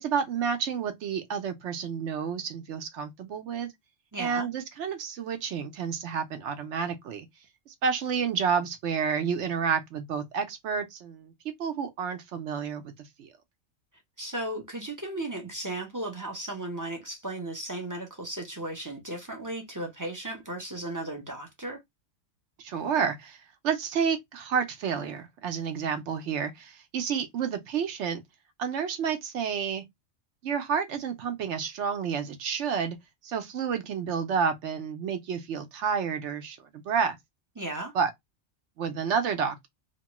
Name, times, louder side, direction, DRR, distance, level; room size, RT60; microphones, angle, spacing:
voice 1, 0.0-3.7 4.2-7.3 7.7-11.3 11.6-13.3 22.6-23.4 23.6-28.2 28.6-29.8 30.4-33.0 33.2-37.2 37.9-38.1 38.8-39.7, right 6 dB, 70° right, 0.9 m, -30 dB
voice 2, 4.1-4.5 14.2-21.8 37.6-37.9, right 1 dB, 25° right, 0.5 m, -35 dB
3.0 x 2.2 x 2.8 m
omnidirectional pair, 1.3 m